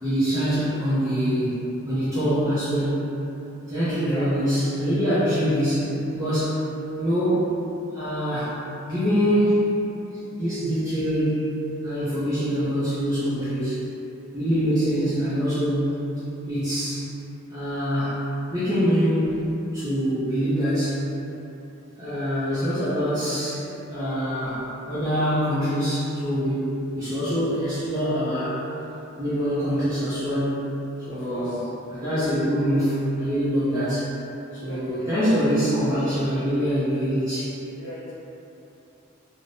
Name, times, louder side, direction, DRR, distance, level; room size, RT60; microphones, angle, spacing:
voice 1, 0.0-3.1 3.7-6.7 7.0-7.5 7.9-8.6 8.9-9.7 10.4-13.7 14.3-16.1 16.5-17.1 17.5-18.2 18.5-21.0 22.0-26.7 26.9-28.6 29.2-30.6 31.1-31.6 31.9-34.1 34.5-37.5, equal, 15° right, -14 dB, 0.6 m, -24 dB
voice 2, 4.0-4.3 13.3-13.4 31.1-31.7 33.7-33.9 34.6-35.2 37.8-38.1, left 1 dB, 65° left, -9 dB, 0.9 m, -38 dB
3.3 x 2.1 x 2.5 m, 2.9 s
head